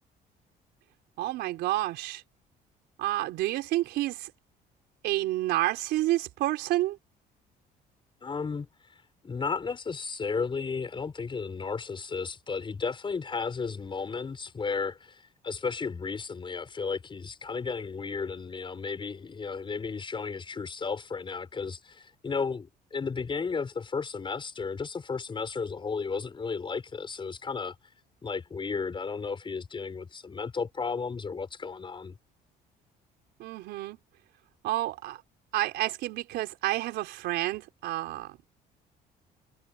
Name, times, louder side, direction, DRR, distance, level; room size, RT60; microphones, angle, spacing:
voice 1, 1.2-2.2 3.0-4.3 5.0-7.0 33.4-34.0 34.6-35.2 35.5-38.4, right 16 dB, 85° right, 4.4 m, -29 dB
voice 2, 8.2-8.7 9.2-27.7 28.2-32.2, left 5 dB, 30° left, 5.8 m, -34 dB
cardioid pair, 110°, 17 cm